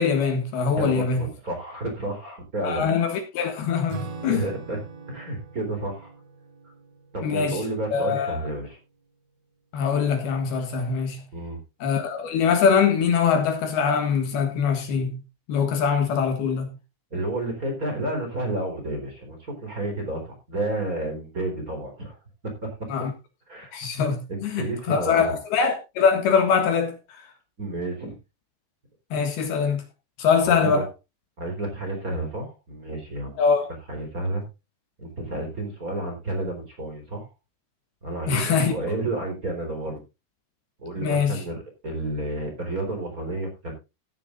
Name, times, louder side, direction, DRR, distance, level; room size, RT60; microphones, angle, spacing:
voice 1, 0.0-1.2 2.6-4.4 7.2-7.6 7.9-8.4 9.7-11.2 11.8-15.2 15.5-16.8 22.9-23.1 23.7-27.2 29.1-29.8 30.2-30.9 33.4-33.7 38.3-38.7 41.0-41.4, left 6 dB, 70° left, 3.5 m, -23 dB
voice 2, 0.7-2.9 4.3-4.8 5.1-6.1 7.1-8.8 11.3-11.6 17.1-22.2 22.4-22.8 23.5-23.7 24.3-25.4 27.6-28.1 30.3-30.8 31.4-33.4 33.9-34.4 35.0-37.3 38.0-40.0 40.8-43.7, right 2 dB, 20° right, 3.9 m, -31 dB
Acoustic guitar / Strum, 3.9-8.7, right 3 dB, 40° right, 3.0 m, -42 dB
16.5 x 10.5 x 2.5 m
omnidirectional pair, 5.0 m